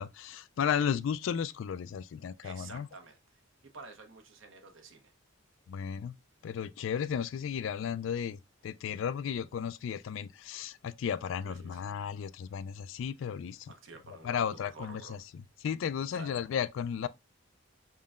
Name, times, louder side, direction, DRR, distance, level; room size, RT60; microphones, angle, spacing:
voice 1, 0.0-2.9 5.7-6.2 6.4-13.7 14.2-15.2 15.6-17.1, left 7 dB, 65° left, 0.3 m, -34 dB
voice 2, 2.4-3.4 3.7-5.1 11.4-11.8 13.7-15.2 16.1-16.4, right 3 dB, 65° right, 0.9 m, -50 dB
5.3 x 3.7 x 2.4 m
head